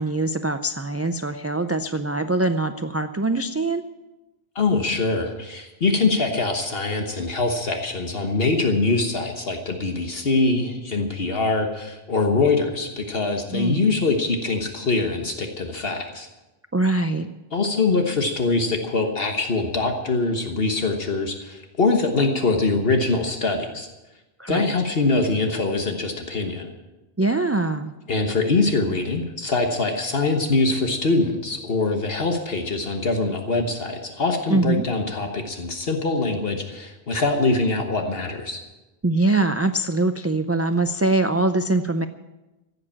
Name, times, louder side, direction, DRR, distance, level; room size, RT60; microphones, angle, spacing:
voice 1, 0.0-3.8 13.5-13.9 16.7-17.3 24.4-24.6 27.2-27.9 34.5-34.8 39.0-42.1, right 2 dB, 25° right, 9 dB, 0.3 m, -23 dB
voice 2, 4.5-16.3 17.5-23.9 24.5-26.7 28.1-38.6, left 3 dB, 65° left, 4 dB, 1.5 m, -23 dB
15.0 x 8.6 x 8.7 m, 1.1 s
omnidirectional pair, 1.1 m